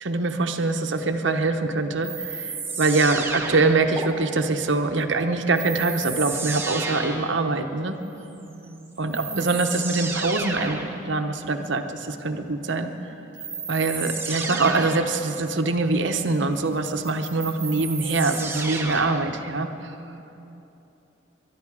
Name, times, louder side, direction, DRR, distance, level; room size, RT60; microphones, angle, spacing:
voice 1, 0.0-8.0 9.0-10.8 11.1-12.9 13.7-19.9, right 3 dB, 65° right, 6 dB, 0.9 m, -24 dB
sound 1, 2.0-4.1 5.5-7.4 8.6-8.7 9.1-11.0 13.3-15.1 16.8-19.3, right 4 dB, 10° right, 1.0 m, -32 dB
voice 2, 8.4-9.5 20.0-20.6, right 3 dB, 30° right, 5 dB, 0.3 m, -42 dB
21.5 x 11.5 x 4.9 m, 3.0 s
head